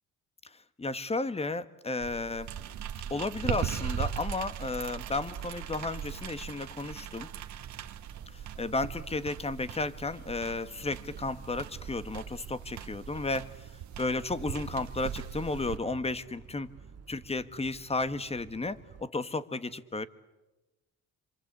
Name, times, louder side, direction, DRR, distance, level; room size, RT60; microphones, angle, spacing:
voice 1, 0.8-2.5 3.1-7.3 8.6-13.7 14.0-16.7 17.1-20.1, left 3 dB, 20° left, 13 dB, 1.5 m, -33 dB
sound 1, 2.0-15.8, right 9 dB, 70° right, 1.7 m, -39 dB
sound 2, 7.5-19.0, right 8 dB, 55° right, 1.3 m, -52 dB
27.5 x 25.5 x 8.5 m, 1.0 s
cardioid pair, 90°, 30 cm